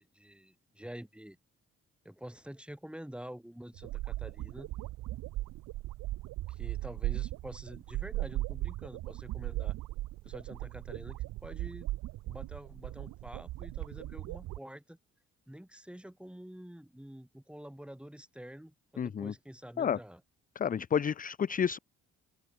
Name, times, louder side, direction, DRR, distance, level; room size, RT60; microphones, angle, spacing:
voice 1, 0.0-1.4 2.1-4.7 6.5-9.8 10.2-11.9 12.3-15.0 15.5-20.2, equal, 5° right, 7.0 m, -47 dB
sound 1, 3.7-14.6, right 17 dB, 85° right, 1.1 m, -38 dB
voice 2, 19.0-19.3 19.8-20.0 20.6-21.8, left 7 dB, 30° left, 0.5 m, -30 dB
open air
cardioid pair, 90°, 30 cm